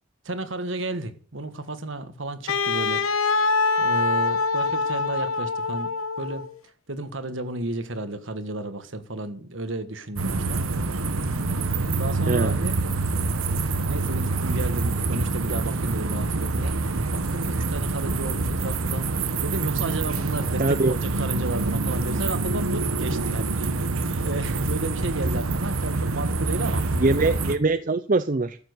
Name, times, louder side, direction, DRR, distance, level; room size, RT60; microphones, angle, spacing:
voice 1, 0.2-3.0 3.4-3.5 3.8-5.9 6.2-6.5 6.9-10.6 11.5-12.8 13.9-23.5 24.2-26.9, right 2 dB, 65° right, 1.5 m, -32 dB
Wind instrument woodwind instrument, 2.5-6.5, left 4 dB, 80° left, 1.2 m, -24 dB
sound 1, 10.2-27.6, right 3 dB, 85° right, 1.1 m, -26 dB
voice 2, 20.6-21.0 27.0-28.6, right 3 dB, 40° right, 0.5 m, -22 dB
14.0 x 7.3 x 8.1 m
head